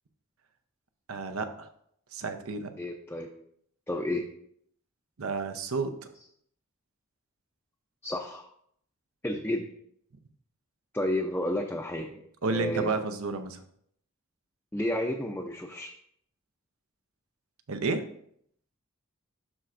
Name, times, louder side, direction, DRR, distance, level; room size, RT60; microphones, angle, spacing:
voice 1, 1.1-1.7 2.1-2.7 5.2-5.9 12.4-13.6 17.7-18.0, right 3 dB, 80° right, 9 dB, 0.7 m, -31 dB
voice 2, 2.8-3.3 3.9-4.3 8.0-8.5 9.2-9.7 10.9-12.2 12.5-12.9 14.7-15.9, left 1 dB, 10° left, 0 dB, 0.5 m, -31 dB
12.5 x 4.4 x 2.5 m, 0.67 s
head